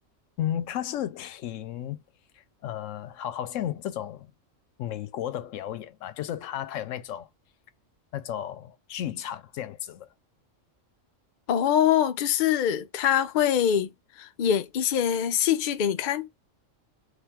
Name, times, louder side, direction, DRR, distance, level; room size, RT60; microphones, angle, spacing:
voice 1, 0.4-2.0 2.3-4.3 4.8-7.3 8.1-10.1, left 11 dB, 80° left, 0.9 m, -33 dB
voice 2, 11.5-13.9 14.2-16.3, left 9 dB, 60° left, 0.5 m, -24 dB
3.5 x 2.9 x 3.5 m
omnidirectional pair, 1.3 m